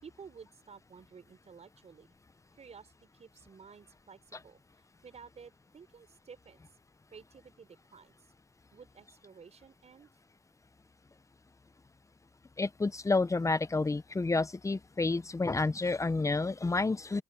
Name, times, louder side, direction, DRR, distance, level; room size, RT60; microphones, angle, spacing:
voice 1, 0.0-2.1 2.6-4.6 5.0-6.6 7.1-8.2 8.7-10.1, right 6 dB, 35° right, 5.7 m, -53 dB
voice 2, 12.6-17.2, left 3 dB, 15° left, 1.0 m, -29 dB
open air
supercardioid pair, 85°, 19 cm